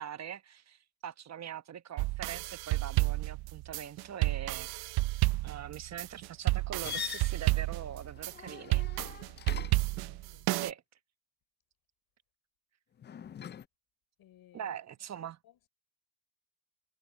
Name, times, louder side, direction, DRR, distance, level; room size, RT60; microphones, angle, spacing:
voice 1, 0.0-4.9 5.4-8.9 10.5-10.8 14.5-15.4, right 9 dB, 45° right, 1.1 m, -43 dB
sound 1, 2.0-10.7, right 21 dB, 70° right, 0.6 m, -31 dB
sound 2, 6.8-10.0 13.0-13.7, left 8 dB, 30° left, 0.4 m, -42 dB
voice 2, 9.9-10.5 14.2-14.7 15.2-15.7, left 12 dB, 65° left, 5.1 m, -60 dB
supercardioid pair, 90°, 38 cm